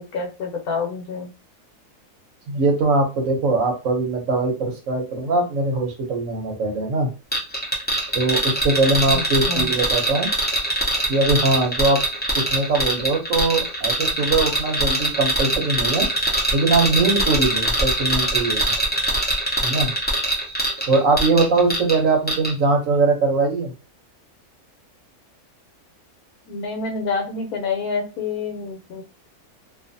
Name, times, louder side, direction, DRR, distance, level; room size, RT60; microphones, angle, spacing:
voice 1, 0.0-1.3 9.1-9.7 26.5-29.0, left 4 dB, 75° left, 2 dB, 1.2 m, -28 dB
voice 2, 2.5-7.1 8.1-10.3 11.1-12.0 12.5-16.1 16.5-18.7 19.6-19.9 20.9-23.7, right 3 dB, 65° right, 2 dB, 1.0 m, -21 dB
sound 1, 7.3-22.0 22.3-22.5, right 1 dB, 10° left, 0.4 m, -22 dB
2.5 x 2.5 x 2.6 m, 0.31 s
omnidirectional pair, 1.6 m